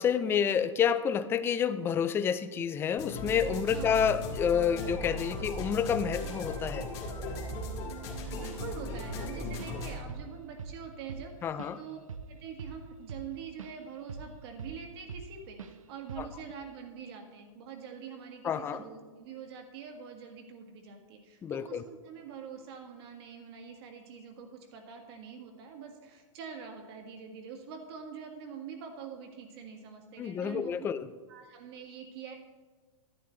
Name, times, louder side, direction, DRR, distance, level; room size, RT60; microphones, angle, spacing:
voice 1, 0.0-6.9 11.4-11.8 16.2-16.3 18.4-18.8 21.4-21.8 30.2-31.1, left 8 dB, 15° left, 13 dB, 0.3 m, -29 dB
sound 1, 3.0-9.9, left 1 dB, 35° left, 2.0 m, -37 dB
voice 2, 3.4-4.0 8.3-12.0 12.3-30.7 31.3-32.3, right 7 dB, 50° right, 4 dB, 1.7 m, -45 dB
Drum kit / Drum, 8.6-8.8 9.1-9.8 10.1-10.3 10.6-13.8 14.1-15.3 15.6-15.8 16.1-16.4, right 5 dB, 90° right, 0.6 m, -43 dB
11.0 x 9.6 x 3.2 m, 1.4 s
hypercardioid pair, 120°, 17 cm